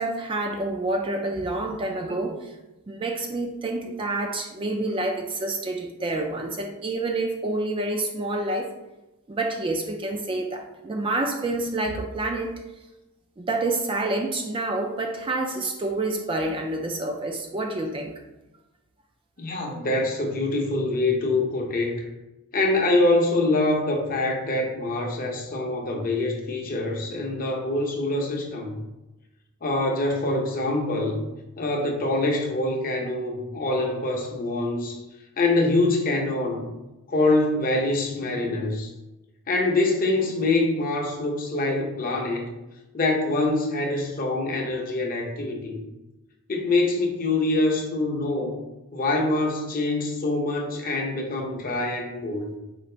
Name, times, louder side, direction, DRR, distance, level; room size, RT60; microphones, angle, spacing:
voice 1, 0.0-2.5 2.9-8.7 9.3-12.6 13.4-18.1, right 2 dB, 25° right, 3 dB, 0.3 m, -28 dB
voice 2, 19.4-22.1 22.5-28.8 29.6-31.3 31.6-35.0 35.4-36.7 37.1-38.9 39.5-42.5 42.9-45.8 46.5-48.6 48.9-52.6, left 2 dB, 40° left, 1 dB, 0.7 m, -25 dB
4.0 x 2.4 x 4.3 m, 1.0 s
head